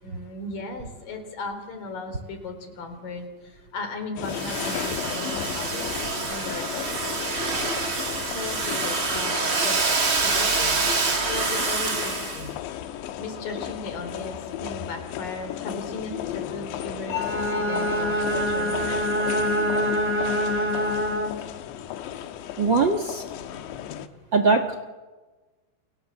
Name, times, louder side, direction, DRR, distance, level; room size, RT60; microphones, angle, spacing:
voice 1, 0.0-6.9 7.6-10.7 11.0-12.5 12.9-19.2, left 3 dB, 50° left, 7 dB, 5.1 m, -37 dB
sound 1, 4.2-24.1, left 11 dB, 90° left, 3.4 m, -34 dB
Domestic sounds home sounds, 4.3-12.5, right 4 dB, 35° right, 3.0 m, -26 dB
Bowed string instrument, 17.1-21.6, equal, 5° right, 0.9 m, -25 dB
voice 2, 22.6-23.2 24.3-24.8, right 4 dB, 65° right, 7 dB, 1.1 m, -21 dB
29.5 x 25.5 x 7.4 m, 1.2 s
omnidirectional pair, 5.0 m